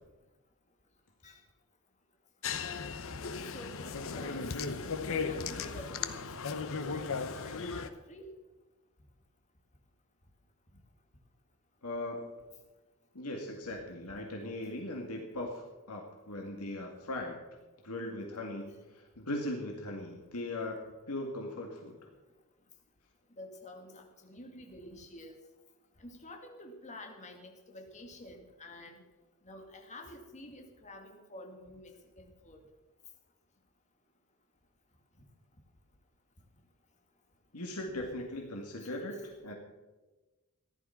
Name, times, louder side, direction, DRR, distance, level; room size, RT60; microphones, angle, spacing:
sound 1, 2.4-7.9, left 5 dB, 65° left, 0.9 m, -36 dB
voice 1, 3.5-4.6 5.1-6.3 6.5-8.3 15.3-15.4 23.4-25.4 26.0-29.0 29.4-32.6 38.8-39.3, left 1 dB, 35° left, 3 dB, 2.0 m, -49 dB
voice 2, 11.8-12.3 13.1-17.4 17.8-20.8 21.1-22.0 37.5-39.5, left 1 dB, 85° left, 1 dB, 2.1 m, -39 dB
14.5 x 11.5 x 5.8 m, 1.2 s
head